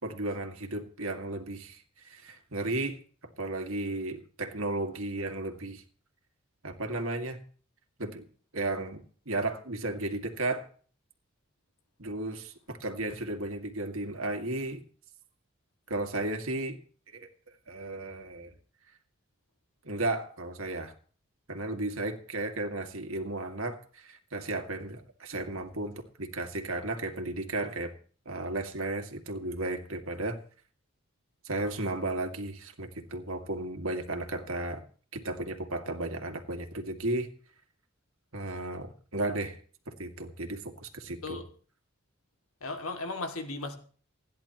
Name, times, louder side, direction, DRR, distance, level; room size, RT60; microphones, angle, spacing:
voice 1, 0.0-3.0 3.4-5.8 6.6-7.4 8.0-8.2 8.5-10.7 12.0-14.8 15.9-16.8 17.1-17.3 17.7-18.5 19.8-20.9 21.5-27.9 28.3-30.4 31.4-34.8 35.1-37.3 38.3-39.6 39.9-41.4, right 2 dB, 75° right, 2.1 m, -34 dB
voice 2, 42.6-43.8, left 3 dB, 85° left, 2.3 m, -36 dB
29.0 x 10.5 x 3.0 m
head